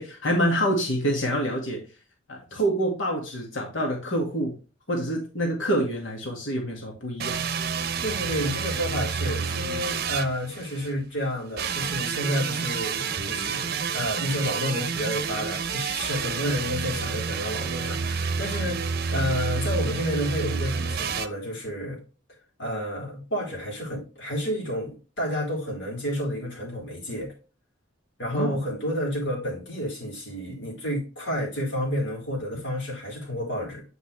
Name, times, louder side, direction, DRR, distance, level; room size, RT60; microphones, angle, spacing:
voice 1, 0.0-1.8 2.3-4.5 4.9-7.4 28.3-28.6, equal, 85° left, 2.1 m, -26 dB
sound 1, 7.2-10.9 11.6-21.3, right 6 dB, 55° right, 0.7 m, -29 dB
voice 2, 8.0-22.0 22.6-27.3 28.2-33.8, equal, 70° left, 4.3 m, -30 dB
8.1 x 5.4 x 3.3 m
head